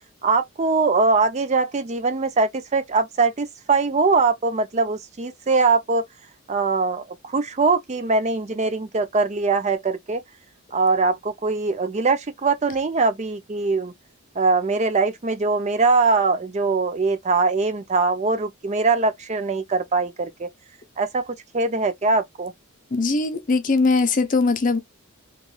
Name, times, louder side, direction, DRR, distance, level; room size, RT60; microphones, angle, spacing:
voice 1, 0.2-6.0 6.5-10.2 10.7-13.9 14.4-20.5 21.0-22.5, right 4 dB, 30° right, 0.4 m, -22 dB
voice 2, 22.9-24.8, left 3 dB, 35° left, 0.5 m, -20 dB
3.0 x 2.4 x 3.8 m
head